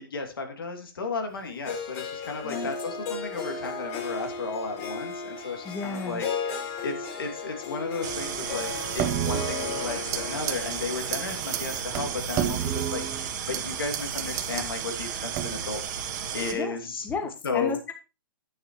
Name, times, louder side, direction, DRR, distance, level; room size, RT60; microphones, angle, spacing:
voice 1, 0.0-15.8 16.3-17.1 17.4-17.8, left 4 dB, 75° left, 4 dB, 2.7 m, -34 dB
Harp, 1.6-13.8, left 5 dB, 40° left, 3.4 m, -36 dB
voice 2, 5.6-6.2 16.5-16.8 17.0-17.9, left 4 dB, 15° left, 6 dB, 1.2 m, -33 dB
sound 1, 8.0-16.5, right 8 dB, 50° right, 1.8 m, -34 dB
sound 2, 9.0-10.2 10.5-10.8 11.1-11.2 11.5-11.6 11.9-13.6 13.9-14.7 15.3-15.8, right 11 dB, 30° right, 1.0 m, -30 dB
9.2 x 9.2 x 3.1 m, 0.30 s
hypercardioid pair, 125°, 12 cm